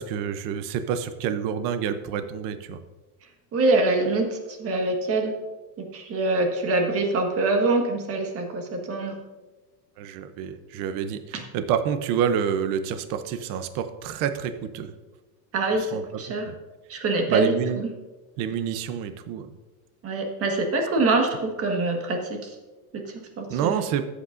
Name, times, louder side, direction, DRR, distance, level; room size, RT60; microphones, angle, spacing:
voice 1, 0.0-2.8 10.0-14.9 15.9-16.0 16.4-16.5 17.3-17.8 18.4-19.5 23.5-24.0, right 8 dB, 45° right, 10 dB, 0.7 m, -28 dB
voice 2, 3.5-5.3 5.8-9.2 15.5-15.9 16.2-16.5 16.9-17.9 20.0-22.5 22.9-23.7, right 2 dB, 30° right, 3 dB, 1.5 m, -25 dB
13.5 x 8.3 x 2.6 m, 1.2 s
supercardioid pair, 150°, 45 cm